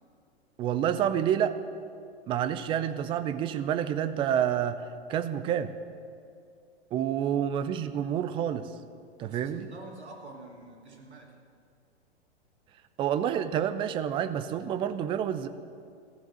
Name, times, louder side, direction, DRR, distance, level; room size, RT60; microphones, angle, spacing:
voice 1, 0.6-1.6 2.3-5.7 6.9-8.7 9.2-9.7 13.0-15.5, right 9 dB, 15° right, 11 dB, 0.4 m, -28 dB
voice 2, 9.2-11.4, right 2 dB, 75° right, 0 dB, 2.5 m, -47 dB
14.5 x 7.3 x 9.0 m, 2.4 s
figure-of-eight pair, 100°, 33 cm